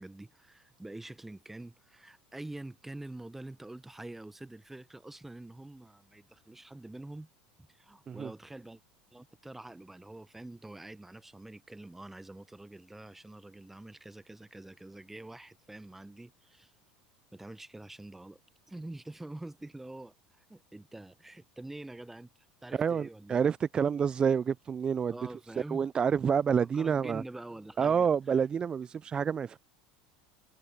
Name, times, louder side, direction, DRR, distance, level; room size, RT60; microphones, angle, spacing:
voice 1, 0.0-7.3 7.7-8.8 9.1-16.7 17.3-18.4 18.7-22.3 22.6-23.5 25.1-25.9 26.7-28.4, right 2 dB, 10° right, 1.1 m, -46 dB
voice 2, 22.7-25.1 25.7-27.2 27.8-29.6, right 7 dB, 30° right, 0.3 m, -28 dB
hypercardioid pair, 85°, 3 cm